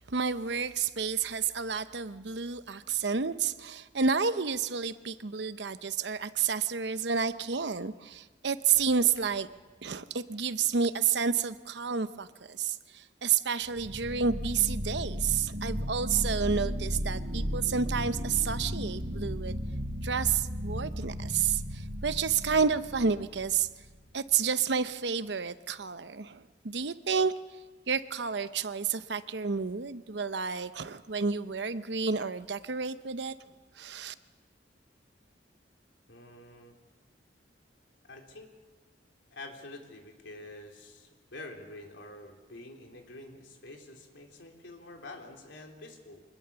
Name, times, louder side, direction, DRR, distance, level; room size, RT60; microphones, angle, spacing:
voice 1, 0.1-9.5 9.8-19.6 20.0-23.7 24.1-27.3 27.9-33.3 33.8-34.1, right 6 dB, 70° right, 12 dB, 0.8 m, -30 dB
sound 1, 8.7-9.3 13.7-23.9, equal, 50° right, 4.9 m, -35 dB
voice 2, 36.1-36.8 38.0-38.5 39.3-46.2, left 2 dB, 90° left, 2 dB, 3.5 m, -47 dB
25.5 x 20.5 x 7.0 m, 1.3 s
head